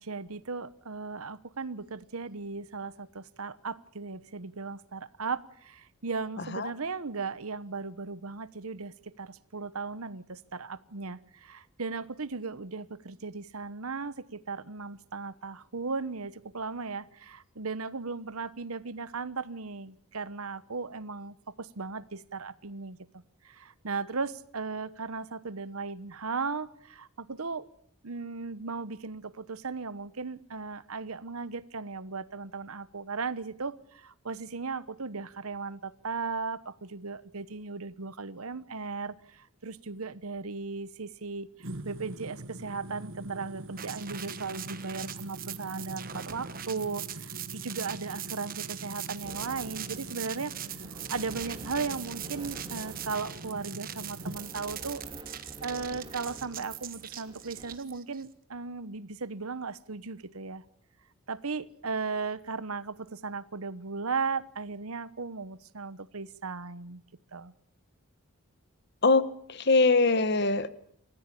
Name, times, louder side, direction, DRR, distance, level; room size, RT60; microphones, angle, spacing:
voice 1, 0.0-23.0 23.4-27.7 28.0-50.5 51.1-55.0 55.6-60.6 61.3-67.0 67.3-67.5, right 4 dB, 80° right, 16 dB, 1.1 m, -37 dB
voice 2, 6.4-6.7 69.0-70.7, left 3 dB, 50° left, 13 dB, 1.3 m, -23 dB
sound 1, 41.6-54.4, right 1 dB, 65° right, 1.5 m, -44 dB
sound 2, 43.8-58.2, right 11 dB, 40° right, 1.3 m, -41 dB
sound 3, 49.2-57.8, right 1 dB, 20° right, 2.3 m, -48 dB
27.5 x 15.0 x 8.5 m, 0.64 s
head